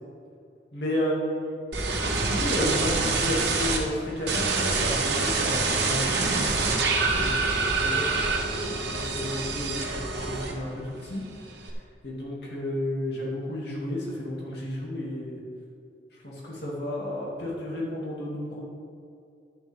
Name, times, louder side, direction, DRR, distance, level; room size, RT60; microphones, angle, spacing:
voice 1, 0.7-1.6 2.1-6.8 7.1-8.1 8.4-11.2 11.5-11.7 12.0-15.4 16.1-18.6, left 1 dB, 70° left, -5 dB, 2.6 m, -32 dB
sound 1, 1.7-3.8 4.3-10.8 11.1-11.7, right 3 dB, 70° right, 1.5 m, -26 dB
11.0 x 10.5 x 3.7 m, 2.5 s
head